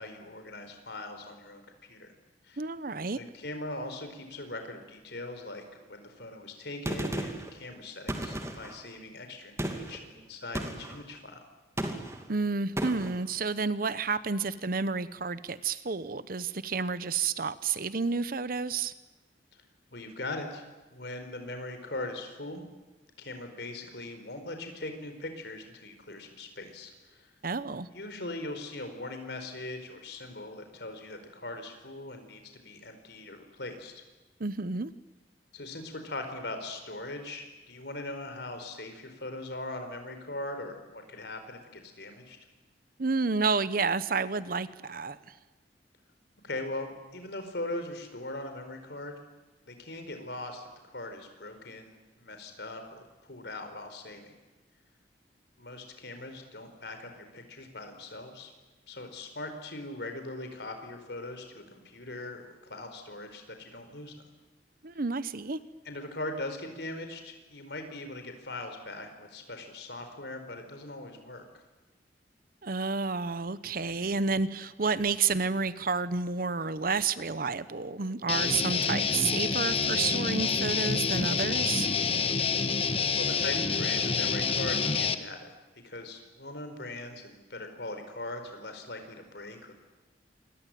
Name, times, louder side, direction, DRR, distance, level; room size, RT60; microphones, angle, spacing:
voice 1, 0.0-2.1 2.4-2.6 3.1-11.4 19.9-22.6 23.2-27.3 27.9-34.0 35.5-42.4 46.4-49.2 49.6-54.4 55.6-58.5 58.9-64.1 65.8-71.4 83.2-85.5 85.8-89.7, left 2 dB, 70° left, 6 dB, 4.6 m, -40 dB
voice 2, 2.6-3.2 12.3-18.9 27.4-27.9 34.4-34.9 43.0-45.3 64.8-65.6 72.6-81.9, right 4 dB, 55° right, 15 dB, 0.9 m, -30 dB
Gunshot gunfire, 6.9-7.5 8.1-8.8 9.6-10.0 10.6-11.0 11.8-12.3 12.8-13.2, right 1 dB, 15° right, 2.5 m, -34 dB
Guitar, 78.3-85.2, left 5 dB, 35° left, 1.4 m, -28 dB
27.5 x 22.5 x 9.2 m, 1.1 s
head